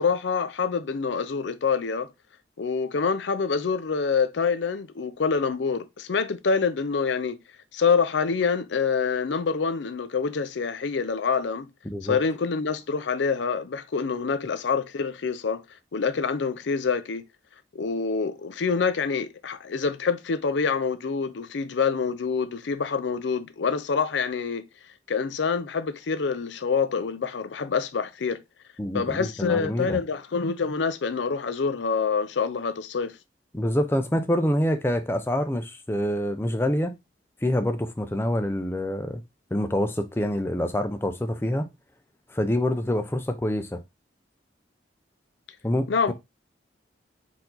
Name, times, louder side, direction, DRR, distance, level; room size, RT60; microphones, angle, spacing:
voice 1, 0.0-2.1 2.6-7.4 7.7-11.7 12.0-15.6 15.9-17.2 17.7-24.7 25.1-28.4 28.9-33.1 45.9-46.1, left 5 dB, 80° left, 0.5 m, -26 dB
voice 2, 11.9-12.2 28.8-30.0 33.5-36.9 37.4-39.2 39.5-41.7 42.3-43.8 45.6-46.1, left 1 dB, 10° left, 0.5 m, -26 dB
4.6 x 2.7 x 3.8 m
head